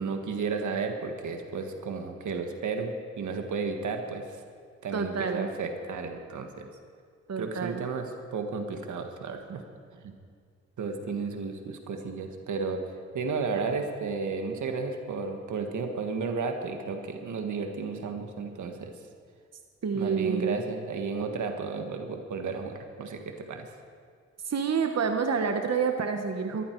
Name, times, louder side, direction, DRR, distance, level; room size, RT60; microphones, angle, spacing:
voice 1, 0.0-4.3 4.8-6.7 7.4-9.6 9.9-10.1 10.8-19.0 19.9-23.7, right 4 dB, 85° right, 4 dB, 1.7 m, -33 dB
voice 2, 4.9-5.5 7.3-7.8 19.8-20.6 24.5-26.6, right 6 dB, 60° right, 5 dB, 1.3 m, -28 dB
22.0 x 14.0 x 4.7 m, 2.1 s
cardioid pair, 50°, 29 cm